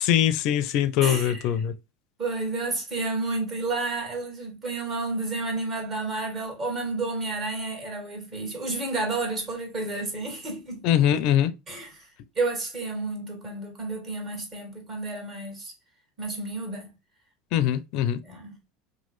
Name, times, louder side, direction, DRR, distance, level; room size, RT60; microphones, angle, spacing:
voice 1, 0.0-1.7 10.8-11.5 17.5-18.2, left 11 dB, 60° left, 0.4 m, -22 dB
voice 2, 1.0-1.4 2.2-10.8 11.7-12.1 12.3-15.7 16.2-16.9 18.2-18.6, right 3 dB, 35° right, 1.7 m, -31 dB
3.0 x 2.2 x 3.0 m
supercardioid pair, 100°, 0 cm